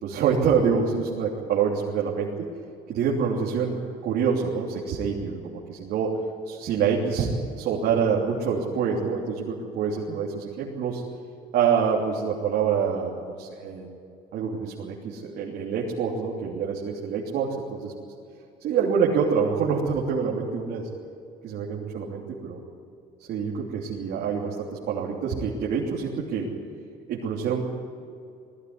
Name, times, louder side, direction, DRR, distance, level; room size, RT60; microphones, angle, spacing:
voice 1, 0.0-2.3 2.9-6.2 6.4-7.3 7.6-11.0 11.5-13.9 14.3-17.9 18.6-20.9 21.4-22.6 23.3-26.5 27.1-27.6, right 6 dB, 70° right, -4 dB, 3.2 m, -26 dB
19.5 x 15.5 x 9.7 m, 2.5 s
cardioid pair, 110°, 17 cm